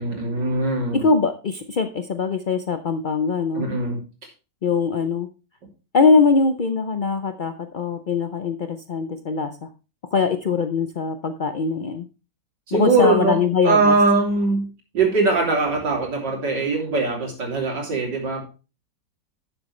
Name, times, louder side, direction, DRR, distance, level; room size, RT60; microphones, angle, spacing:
voice 1, 0.0-1.1 3.6-4.0 12.7-13.4 13.6-14.7 14.9-18.4, right 3 dB, 85° right, 0 dB, 3.7 m, -21 dB
voice 2, 0.9-3.6 4.6-5.3 5.9-9.5 10.1-12.0 12.7-13.9, left 4 dB, 65° left, 8 dB, 0.4 m, -22 dB
11.5 x 7.7 x 3.2 m, 0.32 s
omnidirectional pair, 1.8 m